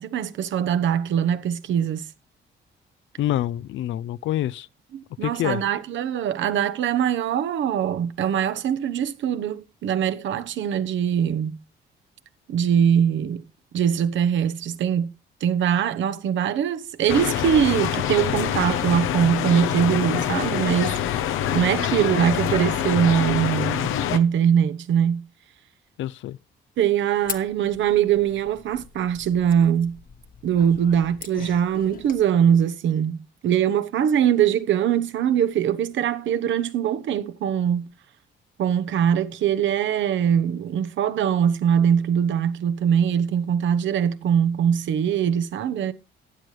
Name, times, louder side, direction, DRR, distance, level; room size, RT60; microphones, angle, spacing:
voice 1, 0.0-2.1 4.9-11.5 12.5-13.4 13.7-15.1 15.4-21.2 21.5-25.2 26.8-29.9 30.4-33.2 33.4-37.9 38.6-45.9, right 8 dB, 75° right, 1.0 m, -22 dB
voice 2, 3.2-4.7 5.2-5.6 26.0-26.4, left 13 dB, 75° left, 0.5 m, -26 dB
sound 1, 17.1-24.2, left 10 dB, 90° left, 0.9 m, -25 dB
sound 2, 27.2-32.2, left 6 dB, 45° left, 1.2 m, -40 dB
15.5 x 9.2 x 3.3 m
cardioid pair, 90°, 20 cm